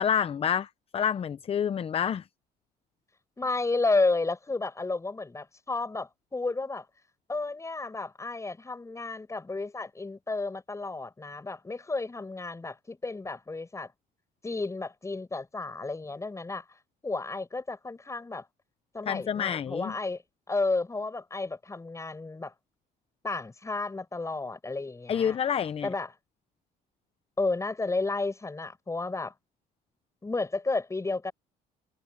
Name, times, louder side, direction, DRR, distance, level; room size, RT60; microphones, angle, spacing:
voice 1, 0.0-2.2 19.1-19.9 25.1-25.9, left 8 dB, 35° left, 0.6 m, -28 dB
voice 2, 3.4-6.9 7.3-13.9 14.4-16.6 17.0-18.5 18.9-20.2 20.5-22.5 23.2-25.4 25.8-26.1 27.4-29.3 30.2-31.3, left 3 dB, 15° left, 6.3 m, -32 dB
cardioid pair, 110°, 17 cm